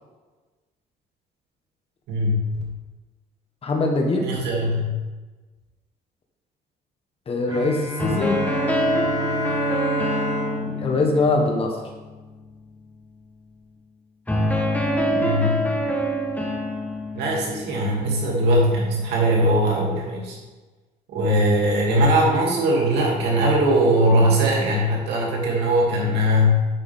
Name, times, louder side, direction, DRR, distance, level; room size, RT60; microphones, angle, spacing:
voice 1, 2.1-2.7 4.2-4.9 15.1-15.6 17.1-20.4 21.1-26.6, equal, 80° right, -3 dB, 2.8 m, -20 dB
voice 2, 3.6-4.3 7.3-8.4 10.6-11.7, left 3 dB, 35° left, 2 dB, 1.4 m, -22 dB
Bowed string instrument, 7.5-12.2, left 1 dB, 20° right, 1.9 m, -29 dB
sound 1, 8.0-12.2 14.3-19.2, equal, 10° left, 1.2 m, -26 dB
9.5 x 6.9 x 3.7 m, 1.3 s
cardioid pair, 110°, 17 cm